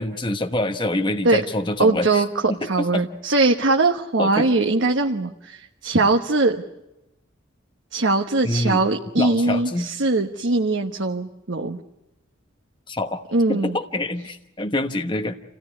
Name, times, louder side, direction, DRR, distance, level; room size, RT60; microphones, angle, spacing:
voice 1, 0.0-2.2 2.5-3.1 4.2-4.5 8.4-8.8 9.2-9.9 12.9-13.2 13.5-15.4, left 1 dB, 25° left, 5 dB, 1.1 m, -25 dB
voice 2, 1.8-6.6 7.9-11.8 13.3-13.8, right 3 dB, 70° right, 3 dB, 1.2 m, -21 dB
28.0 x 17.0 x 9.7 m, 0.94 s
head